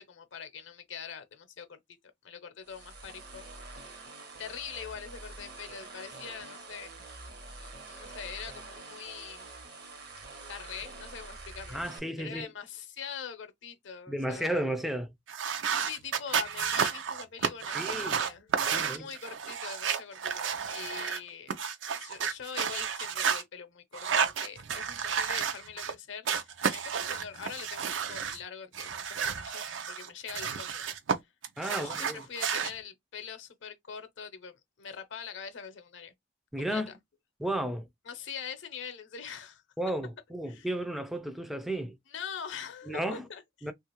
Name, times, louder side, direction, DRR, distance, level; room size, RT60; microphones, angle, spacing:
voice 1, 0.0-1.8 2.2-3.9 4.4-6.9 7.6-9.5 10.5-11.8 12.2-14.6 15.7-21.6 21.9-30.8 31.2-31.3 31.7-36.1 36.6-37.0 38.1-39.6 40.5-40.7 42.1-43.7, left 7 dB, 75° left, 0.6 m, -43 dB
sound 1, 2.6-12.0, right 3 dB, 60° right, 0.9 m, -46 dB
voice 2, 11.7-12.5 14.1-15.1 17.7-18.2 18.6-19.1 31.6-32.2 36.5-36.9 37.4-37.9 39.8-42.0 42.9-43.2 43.6-43.7, right 1 dB, ahead, 0.3 m, -33 dB
sound 2, 15.3-21.2 21.5-23.4 23.9-25.9 26.2-28.4 28.7-31.1 31.4-32.7, right 7 dB, 80° right, 0.5 m, -31 dB
3.0 x 2.4 x 2.9 m
head